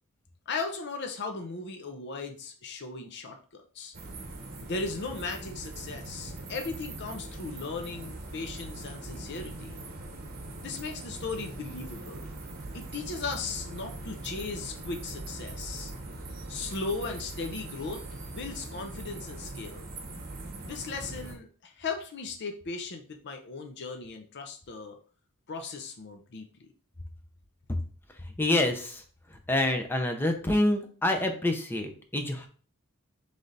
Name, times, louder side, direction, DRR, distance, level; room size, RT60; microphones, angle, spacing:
voice 1, 0.5-3.9 4.6-9.8 10.6-12.3 12.7-15.9 16.5-18.0 18.3-19.9 20.7-25.0 25.5-26.7, left 4 dB, 50° left, 5 dB, 0.6 m, -37 dB
sound 1, 3.9-21.3, right 2 dB, 45° right, 0.9 m, -41 dB
voice 2, 28.4-29.0 29.5-32.5, left 1 dB, 10° left, 4 dB, 0.6 m, -27 dB
3.8 x 3.3 x 4.0 m, 0.41 s
head